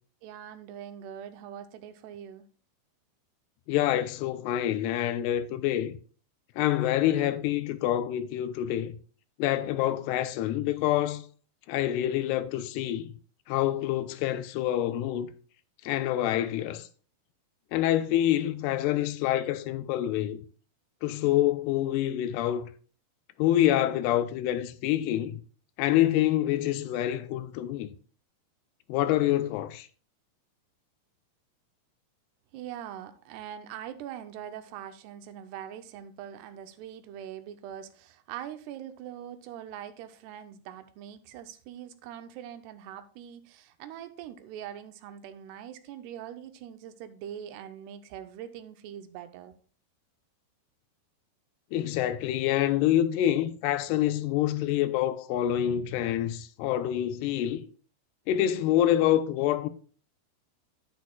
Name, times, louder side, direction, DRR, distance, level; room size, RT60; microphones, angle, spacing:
voice 1, 0.2-2.4 32.5-49.5, right 10 dB, 80° right, 2.7 m, -42 dB
voice 2, 3.7-6.0 6.6-9.0 9.4-11.2 11.7-13.1 13.5-15.3 15.9-16.9 17.7-20.4 21.0-22.7 23.4-25.4 25.8-27.9 28.9-29.9 51.7-57.7 58.3-59.7, left 12 dB, 80° left, 2.6 m, -26 dB
10.5 x 9.6 x 2.3 m
omnidirectional pair, 4.8 m